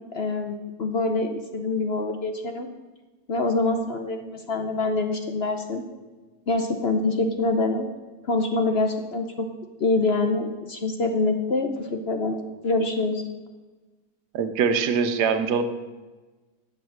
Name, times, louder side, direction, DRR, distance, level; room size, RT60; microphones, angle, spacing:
voice 1, 0.1-0.5 0.8-2.7 3.3-5.8 6.5-7.9 8.2-9.5 9.8-12.4 12.6-13.2, left 3 dB, 50° left, 5 dB, 0.9 m, -25 dB
voice 2, 14.3-15.6, right 6 dB, 80° right, 9 dB, 1.4 m, -23 dB
10.5 x 6.9 x 6.4 m, 1.3 s
omnidirectional pair, 1.7 m